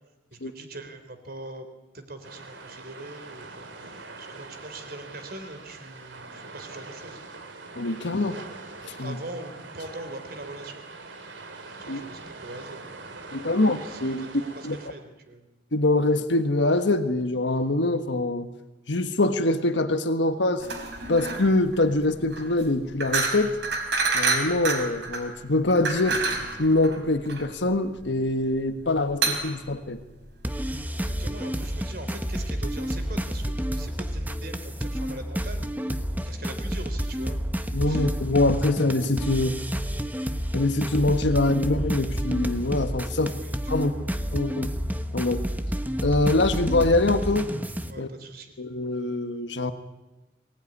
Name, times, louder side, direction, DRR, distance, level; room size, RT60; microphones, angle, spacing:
voice 1, 0.3-1.7 1.9-7.2 9.0-10.8 11.8-12.8 13.6-15.4 31.0-35.6 36.2-37.4 37.9-38.1 43.1-44.0 47.9-48.5, right 2 dB, 55° right, 7 dB, 3.6 m, -42 dB
sound 1, 2.2-14.9, right 3 dB, 90° right, 3.0 m, -43 dB
voice 2, 7.8-8.4 8.9-9.2 11.9-12.0 13.3-14.3 14.6-14.8 15.7-18.5 18.9-20.7 21.1-23.5 24.1-26.2 26.6-30.0 37.7-39.6 40.5-43.3 43.7-43.9 44.3-44.7 45.1-45.4 46.0-47.5 48.0-48.1 48.6-49.7, left 2 dB, 80° left, 9 dB, 1.4 m, -24 dB
sound 2, 20.6-30.6, right 3 dB, 70° right, 4.8 m, -29 dB
sound 3, 30.4-47.9, equal, 10° right, 1.1 m, -30 dB
23.0 x 18.5 x 9.8 m, 1.1 s
head